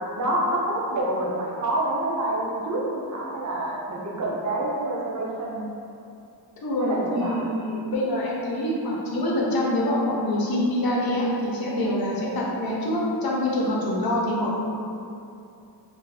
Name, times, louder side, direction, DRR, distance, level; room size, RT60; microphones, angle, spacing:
voice 1, 0.1-5.7 6.8-7.4, right 1 dB, 45° right, -4 dB, 0.5 m, -27 dB
voice 2, 6.6-14.6, left 1 dB, 55° left, -4 dB, 0.7 m, -25 dB
2.6 x 2.4 x 2.3 m, 2.6 s
cardioid pair, 100°, 43 cm